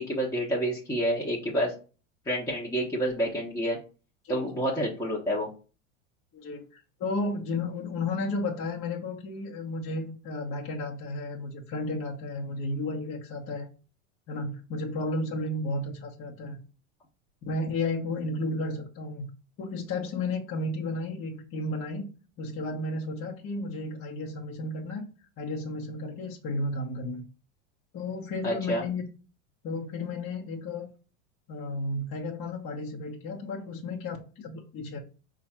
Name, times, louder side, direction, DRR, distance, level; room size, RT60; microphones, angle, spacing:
voice 1, 0.0-1.7 2.3-3.8 4.3-5.5 28.4-28.8, equal, 10° left, -4 dB, 1.0 m, -28 dB
voice 2, 6.3-13.7 14.3-16.6 17.4-19.3 19.6-22.1 22.4-25.0 25.4-27.2 27.9-29.0 29.6-30.9 31.5-35.0, left 2 dB, 35° left, -3 dB, 1.1 m, -33 dB
4.7 x 2.5 x 4.3 m, 0.35 s
hypercardioid pair, 110°, 38 cm